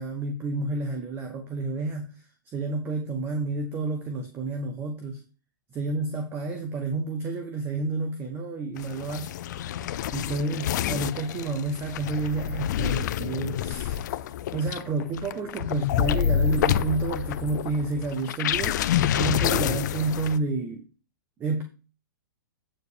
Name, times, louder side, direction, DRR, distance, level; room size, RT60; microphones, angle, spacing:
voice 1, 0.0-5.2 5.7-9.4 10.1-14.1 14.5-20.9 21.4-21.6, right 3 dB, 20° right, 1.1 m, -30 dB
sound 1, 8.8-20.4, left 10 dB, 55° left, 0.6 m, -28 dB
8.9 x 4.8 x 5.0 m
hypercardioid pair, 155°, 11 cm